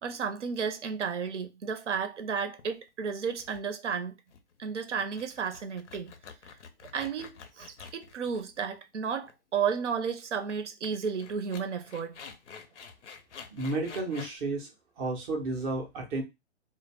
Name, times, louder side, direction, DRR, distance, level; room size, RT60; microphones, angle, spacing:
voice 1, 0.0-4.2 4.6-6.1 6.5-6.6 6.9-12.2, right 6 dB, 90° right, 0.6 m, -33 dB
sound 1, 2.6-2.9 3.3-3.6 3.9-4.0 4.3-4.6 5.0-8.9 9.2-9.3 10.5-10.6 10.8-10.9 11.2-14.4, left 6 dB, 85° left, 0.6 m, -48 dB
voice 2, 13.5-14.7 15.0-16.2, right 2 dB, 15° right, 0.4 m, -32 dB
2.0 x 2.0 x 3.3 m
hypercardioid pair, 135°, 34 cm